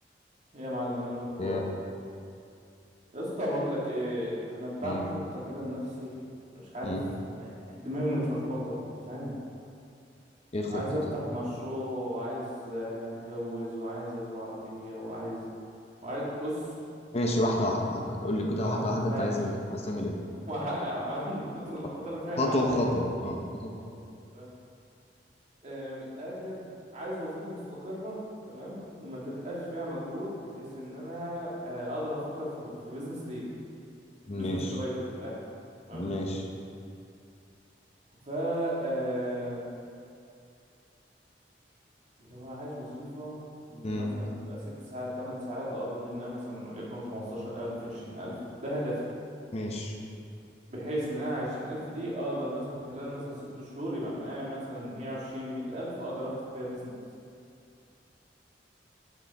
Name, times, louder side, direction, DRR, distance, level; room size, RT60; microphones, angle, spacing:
voice 1, 0.5-1.6 3.1-6.1 6.5-7.0 7.3-9.3 10.7-15.4 16.0-16.7 17.4-17.5 18.6-19.3 20.3-23.0 24.3-24.5 25.6-26.7 26.9-33.5 34.3-35.4 35.9-36.1 38.3-39.6 42.2-43.4 43.7-49.0 50.7-56.9, equal, 40° right, -6 dB, 2.0 m, -35 dB
voice 2, 17.1-20.1 22.4-23.7 34.3-34.7 35.9-36.4 43.8-44.1 49.5-49.9, left 1 dB, 40° left, 0 dB, 0.8 m, -29 dB
9.4 x 6.8 x 3.5 m, 2.5 s
head